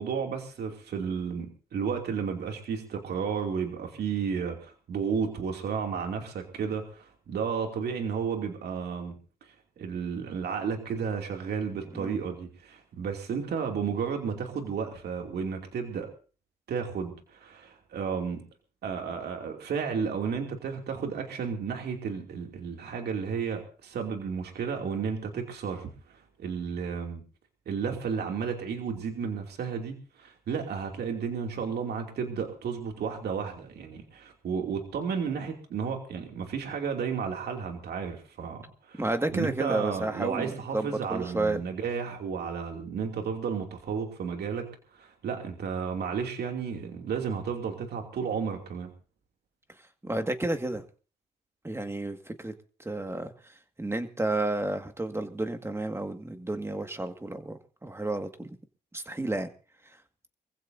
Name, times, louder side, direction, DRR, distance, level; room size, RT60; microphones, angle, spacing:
voice 1, 0.0-16.1 16.7-18.4 18.8-27.2 27.7-44.7 44.9-48.9, right 6 dB, 80° right, 3 dB, 2.7 m, -33 dB
voice 2, 39.0-41.6 50.0-50.8 51.6-52.5 52.8-53.3 53.8-58.6 58.9-59.5, right 2 dB, 15° right, 7 dB, 1.9 m, -31 dB
25.0 x 15.5 x 2.7 m, 0.37 s
cardioid pair, 75°, 17 cm